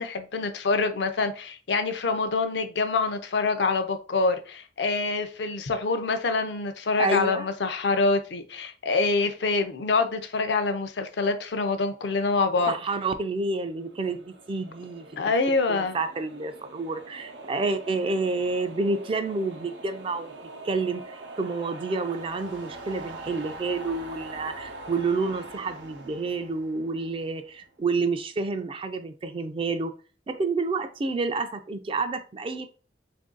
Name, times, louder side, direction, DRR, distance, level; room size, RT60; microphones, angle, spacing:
voice 1, 0.0-12.7 15.2-16.0, left 3 dB, 70° left, 0.5 m, -26 dB
voice 2, 7.0-7.5 12.7-15.1 15.7-20.3 20.6-29.9 30.3-32.7, right 3 dB, 30° right, 0.3 m, -29 dB
sound 1, 13.4-27.7, right 2 dB, 80° right, 0.7 m, -43 dB
3.1 x 2.6 x 3.7 m
head